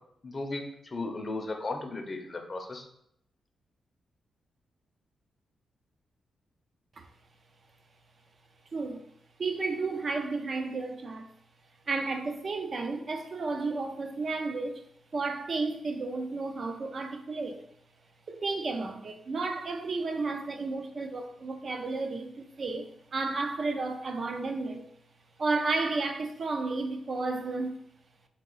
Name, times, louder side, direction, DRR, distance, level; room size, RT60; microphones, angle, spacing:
voice 1, 0.2-2.9, left 2 dB, 35° left, 0.6 m, -36 dB
voice 2, 8.7-9.0 9.4-11.3 11.9-14.9 15.1-17.6 18.3-24.9 25.4-27.8, right 3 dB, 45° right, 0.4 m, -32 dB
3.7 x 2.9 x 3.8 m
cardioid pair, 110°, 0 cm